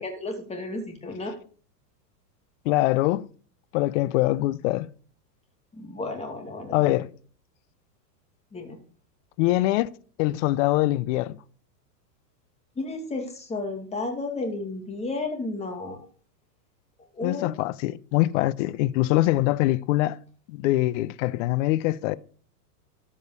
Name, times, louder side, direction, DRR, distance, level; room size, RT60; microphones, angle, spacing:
voice 1, 0.0-1.4 5.7-7.0 8.5-8.8 12.8-16.0 17.1-17.5, left 2 dB, 10° left, 2.4 m, -33 dB
voice 2, 2.6-3.3 3.7-4.9 6.7-7.1 9.4-9.9 10.2-11.4 17.2-20.2 20.5-22.2, left 17 dB, 50° left, 0.7 m, -23 dB
13.0 x 5.3 x 6.6 m
supercardioid pair, 145°, 50 cm